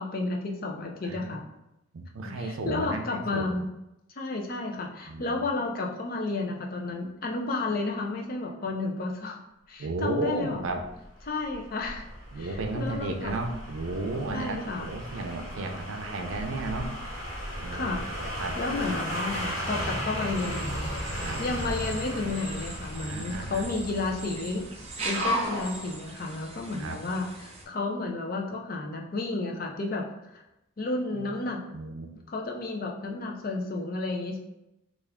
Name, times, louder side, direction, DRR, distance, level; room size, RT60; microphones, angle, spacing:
voice 1, 0.0-1.4 2.4-3.7 4.2-9.4 9.7-10.6 11.2-12.1 12.4-13.3 14.3-14.9 17.7-18.0 18.6-20.9 21.4-24.6 25.0-30.4 30.8-31.6 32.3-34.4, left 3 dB, 45° left, 1 dB, 0.5 m, -32 dB
voice 2, 1.0-1.4 1.9-3.5 5.1-5.5 9.8-10.8 12.3-16.9 17.6-17.9 18.2-18.6 21.1-21.4 23.1-23.7 26.8-27.0 31.1-31.4 31.7-32.1, right 2 dB, 80° right, 5 dB, 0.5 m, -33 dB
sound 1, 10.8-25.7 26.0-26.1, equal, 85° left, 1.2 m, -36 dB
sound 2, 20.3-27.6, equal, 30° right, 0.6 m, -37 dB
3.4 x 2.4 x 3.5 m, 0.88 s
head